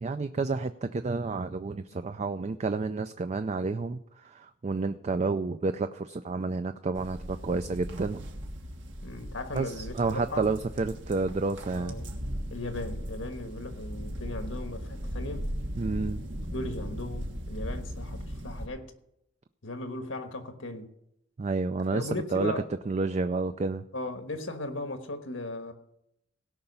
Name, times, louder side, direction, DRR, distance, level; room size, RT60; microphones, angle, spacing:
voice 1, 0.0-8.2 9.5-12.0 15.8-16.2 21.4-22.5 22.9-23.8, right 3 dB, 35° right, 0.4 m, -30 dB
sound 1, 6.9-18.7, equal, 70° right, 1.6 m, -37 dB
voice 2, 9.0-10.5 11.7-12.1 12.5-15.5 16.5-18.9 19.6-20.9 21.9-22.6 23.9-25.7, left 2 dB, 85° left, 1.5 m, -37 dB
17.0 x 5.8 x 5.5 m
head